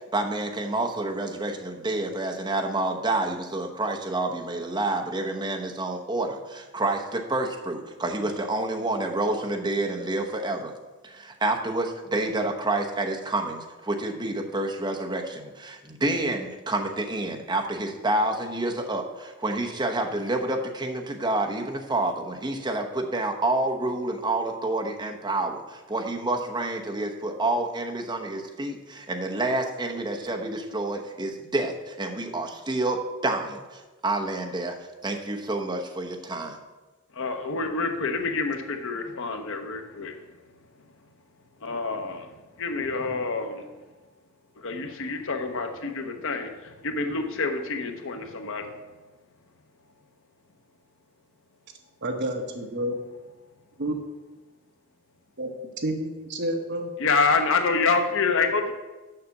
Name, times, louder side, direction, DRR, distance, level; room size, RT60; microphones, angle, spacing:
voice 1, 0.1-10.7 11.0-34.8 35.0-36.6, right 2 dB, 20° right, 2 dB, 0.9 m, -28 dB
voice 2, 37.1-40.2 41.6-43.7 44.6-48.7 57.0-58.7, left 4 dB, 65° left, 6 dB, 0.9 m, -27 dB
voice 3, 52.0-53.0 53.8-54.0 55.4-55.5 55.8-56.9, right 1 dB, 55° right, 3 dB, 1.1 m, -29 dB
6.7 x 5.8 x 7.1 m, 1.2 s
head